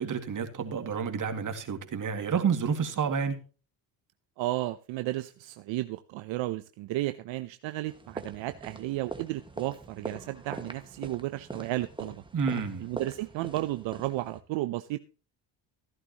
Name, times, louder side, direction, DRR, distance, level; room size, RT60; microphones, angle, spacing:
voice 1, 0.0-3.4 12.3-12.8, right 6 dB, 40° right, 2.3 m, -29 dB
voice 2, 4.4-12.2 12.8-15.0, right 17 dB, 70° right, 0.8 m, -33 dB
sound 1, 7.9-14.4, right 2 dB, 10° right, 1.7 m, -43 dB
14.5 x 11.0 x 3.0 m
supercardioid pair, 80°, 46 cm